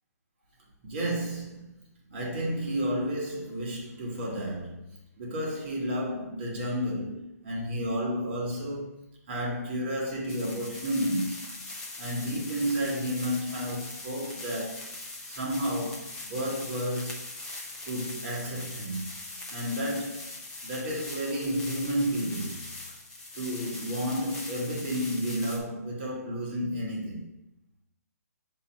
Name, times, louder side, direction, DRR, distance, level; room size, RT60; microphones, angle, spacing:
voice 1, 0.8-1.7 2.1-4.8 5.2-8.9 9.3-11.5 12.0-17.2 17.8-19.1 19.5-20.3 20.6-22.6 23.3-27.3, equal, 35° right, 2.6 m, -31 dB
sound 1, 10.3-25.6, left 2 dB, 10° left, 0.7 m, -41 dB
8.0 x 3.0 x 5.5 m
hypercardioid pair, 165°, 9 cm